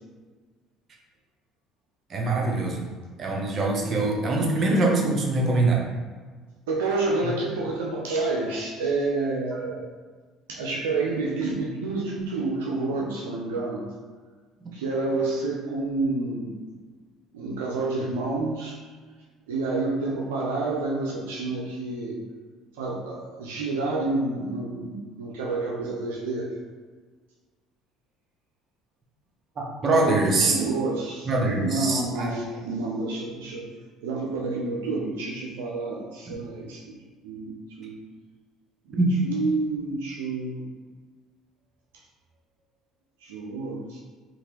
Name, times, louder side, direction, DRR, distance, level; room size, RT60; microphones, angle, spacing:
voice 1, 2.1-2.9 3.2-5.8 7.2-7.3 9.5-9.6 29.6-30.6 31.3-32.3 36.3-36.4 39.0-39.1, right 2 dB, 45° right, -1 dB, 0.7 m, -23 dB
voice 2, 6.7-9.9 10.6-13.9 14.7-16.6 17.3-18.8 19.5-22.2 22.8-26.5 30.0-31.3 31.6-33.7 34.0-37.0 37.2-38.0 38.9-40.6 43.2-44.0, right 3 dB, 85° right, -3 dB, 0.4 m, -29 dB
2.9 x 2.4 x 2.7 m, 1.5 s
hypercardioid pair, 70°, 0 cm